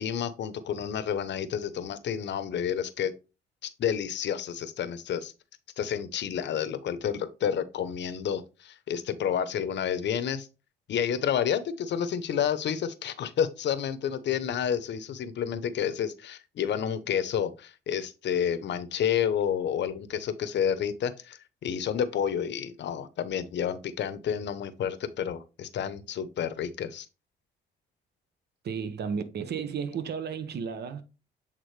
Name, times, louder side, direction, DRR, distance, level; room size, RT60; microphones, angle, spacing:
voice 1, 0.0-3.1 3.6-5.3 5.8-10.5 10.9-27.1, left 8 dB, 65° left, 0.8 m, -30 dB
voice 2, 28.6-31.0, right 6 dB, 55° right, 0.8 m, -33 dB
8.2 x 3.6 x 3.2 m
cardioid pair, 90°, 20 cm